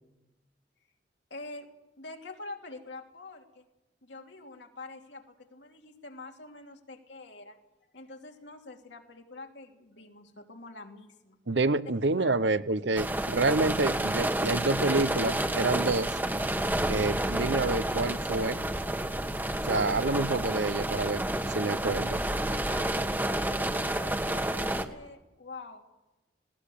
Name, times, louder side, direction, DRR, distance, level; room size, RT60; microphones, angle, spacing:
voice 1, 1.3-1.7 2.0-3.6 4.0-7.6 7.9-11.4 12.2-12.5 22.5-25.8, left 2 dB, 75° left, 3 dB, 3.0 m, -46 dB
voice 2, 11.5-16.2 16.9-18.6 19.6-21.2 21.5-22.2, right 3 dB, 75° right, 14 dB, 0.9 m, -28 dB
sound 1, 13.0-24.9, right 1 dB, 10° right, 1.3 m, -30 dB
20.0 x 18.5 x 8.6 m, 1.0 s
head